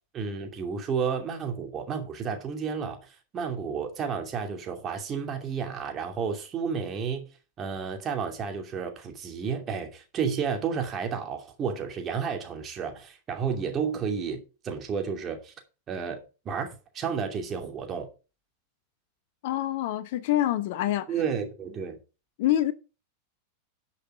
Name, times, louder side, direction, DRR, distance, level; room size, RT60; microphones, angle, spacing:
voice 1, 0.1-7.2 7.6-15.5 15.9-18.1 21.1-22.0, right 6 dB, 25° right, 2.6 m, -31 dB
voice 2, 19.4-21.1 22.4-22.7, left 13 dB, 50° left, 0.8 m, -26 dB
10.5 x 5.6 x 5.1 m
figure-of-eight pair, 90°, 0 cm